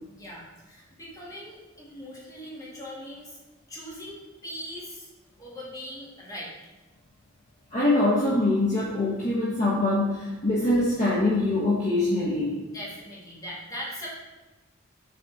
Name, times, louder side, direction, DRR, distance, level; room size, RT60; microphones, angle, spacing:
voice 1, 0.2-3.4 3.7-5.1 5.4-6.5 12.7-14.1, equal, 20° left, -6 dB, 2.0 m, -40 dB
voice 2, 7.7-12.6, left 2 dB, 35° left, -7 dB, 1.1 m, -24 dB
7.0 x 4.2 x 4.1 m, 1.1 s
head